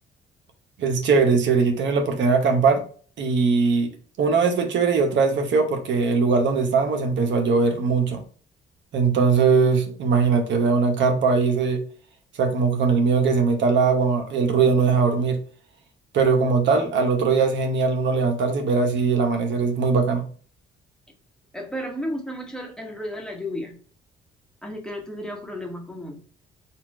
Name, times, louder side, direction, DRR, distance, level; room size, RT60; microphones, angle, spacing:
voice 1, 0.8-2.8 3.2-3.9 4.2-8.2 8.9-11.8 12.4-15.4 16.1-20.2, right 5 dB, 65° right, 0.9 m, -20 dB
voice 2, 21.5-23.8 24.6-26.2, equal, 5° left, 1.1 m, -33 dB
4.2 x 2.4 x 4.5 m
cardioid pair, 90°, 20 cm